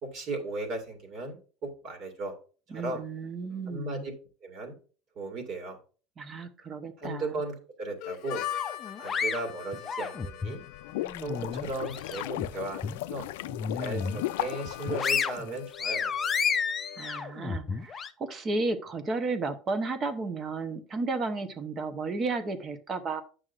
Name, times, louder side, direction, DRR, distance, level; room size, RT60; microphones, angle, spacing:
voice 1, 0.0-2.3 2.7-3.0 3.7-4.1 4.4-4.7 5.2-5.8 7.0-8.4 9.0-10.6 11.2-13.3 13.7-16.1, right 2 dB, 45° right, 2 dB, 2.2 m, -36 dB
voice 2, 2.7-4.1 6.2-7.4 17.0-23.2, right 3 dB, 25° right, 10 dB, 0.9 m, -33 dB
Harmonica, 8.0-17.6, left 13 dB, 60° left, 0.8 m, -43 dB
sound 1, 8.5-10.6 11.0-12.5 12.8-13.0 13.4-14.2 14.6-18.1, left 6 dB, 25° left, 0.5 m, -31 dB
sound 2, 10.6-16.0, left 16 dB, 90° left, 0.3 m, -36 dB
9.4 x 6.3 x 2.5 m, 0.37 s
supercardioid pair, 140°, 0 cm